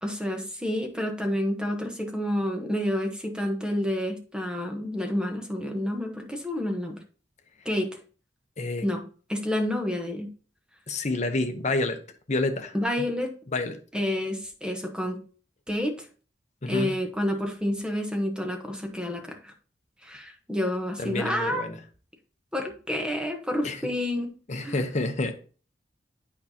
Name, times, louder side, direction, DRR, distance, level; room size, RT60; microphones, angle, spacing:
voice 1, 0.0-7.0 7.6-7.9 8.8-9.0 9.3-10.3 12.7-13.3 13.9-15.2 15.7-16.1 16.7-19.5 20.0-21.6 22.5-24.3 24.6-24.8, left 1 dB, 5° right, 1.0 m, -29 dB
voice 2, 10.9-12.0 12.3-12.7 13.5-13.8 16.6-16.9 21.0-21.8 23.6-23.8 24.5-25.3, left 2 dB, 40° left, 0.8 m, -28 dB
8.5 x 5.5 x 2.8 m
head